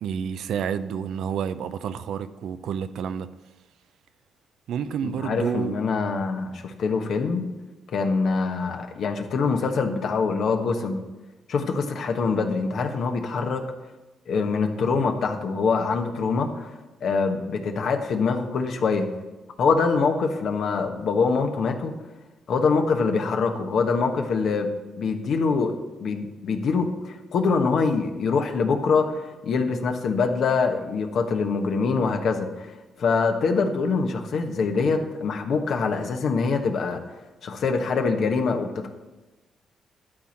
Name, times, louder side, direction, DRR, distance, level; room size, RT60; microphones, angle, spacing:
voice 1, 0.0-3.3 4.7-5.7, right 7 dB, 80° right, 0.5 m, -29 dB
voice 2, 5.0-7.4 7.9-11.0 11.5-13.6 14.3-16.7 17.0-19.1 19.6-21.9 22.5-24.7 25.0-25.7 26.0-32.7 33.0-37.0 37.4-38.9, left 4 dB, 70° left, 1.2 m, -24 dB
11.5 x 4.3 x 7.4 m
supercardioid pair, 65°, 0 cm